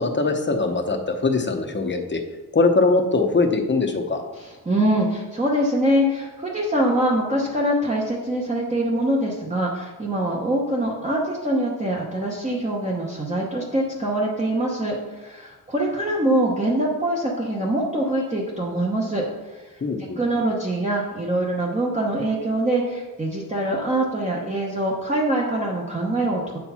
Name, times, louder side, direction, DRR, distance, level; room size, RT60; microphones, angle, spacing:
voice 1, 0.0-2.2 2.5-4.2 19.8-20.2, left 3 dB, 30° left, 5 dB, 0.8 m, -21 dB
voice 2, 4.4-19.2 19.5-19.7 20.2-26.6, right 1 dB, 20° right, -4 dB, 1.0 m, -24 dB
8.0 x 4.6 x 5.6 m, 1.2 s
wide cardioid pair, 155°, 37 cm